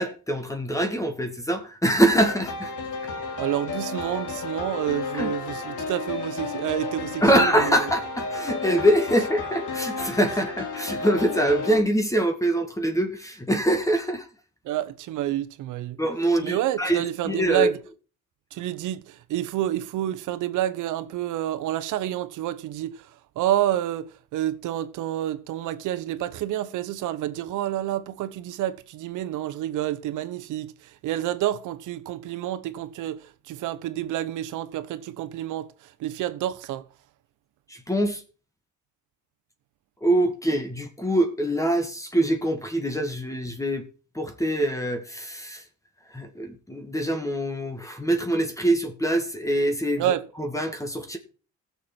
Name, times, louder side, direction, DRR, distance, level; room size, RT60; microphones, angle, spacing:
voice 1, 0.0-2.7 5.1-5.3 7.2-14.3 16.0-17.7 37.7-38.2 40.0-43.9 44.1-45.6 46.1-51.2, right 1 dB, 10° left, 1.9 m, -24 dB
sound 1, 2.2-11.8, left 3 dB, 80° left, 2.6 m, -32 dB
voice 2, 3.4-7.8 14.6-16.0 16.4-17.8 18.5-23.1 23.4-24.1 24.3-36.9 50.0-50.2, right 12 dB, 90° right, 1.0 m, -29 dB
16.0 x 7.0 x 4.5 m
cardioid pair, 90°, 30 cm